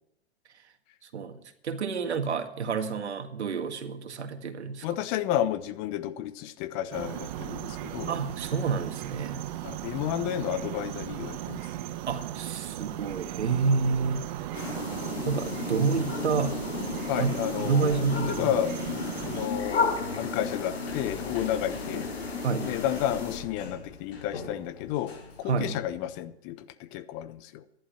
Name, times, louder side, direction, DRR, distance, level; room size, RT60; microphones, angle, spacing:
voice 1, 1.0-5.0 8.1-9.4 12.1-14.3 15.3-16.6 17.2-17.3 17.6-18.6 22.4-22.7 25.5-25.8, right 5 dB, 85° right, 8 dB, 1.8 m, -29 dB
voice 2, 4.8-8.1 9.6-11.6 17.1-19.8 20.2-22.1 22.6-26.7 26.9-27.5, left 11 dB, 35° left, 13 dB, 1.0 m, -31 dB
sound 1, 6.9-19.5, right 13 dB, 45° right, 1.2 m, -37 dB
sound 2, 14.5-23.4, left 4 dB, 85° left, 5.1 m, -33 dB
Sliding door, 19.0-26.2, left 3 dB, 65° left, 5.0 m, -43 dB
14.5 x 11.5 x 5.8 m, 0.79 s
hypercardioid pair, 135°, 33 cm